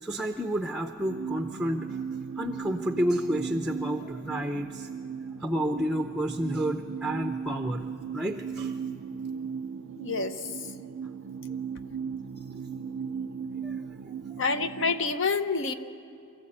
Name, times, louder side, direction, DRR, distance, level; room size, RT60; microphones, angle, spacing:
voice 1, 0.0-2.0 2.4-4.9 5.4-8.8 13.6-13.8, equal, 5° right, 6 dB, 0.6 m, -30 dB
sound 1, 1.0-15.1, right 6 dB, 65° right, 0.4 m, -37 dB
voice 2, 10.0-10.5 14.4-15.7, left 4 dB, 60° left, 10 dB, 0.9 m, -27 dB
24.5 x 14.0 x 8.7 m, 2.7 s
head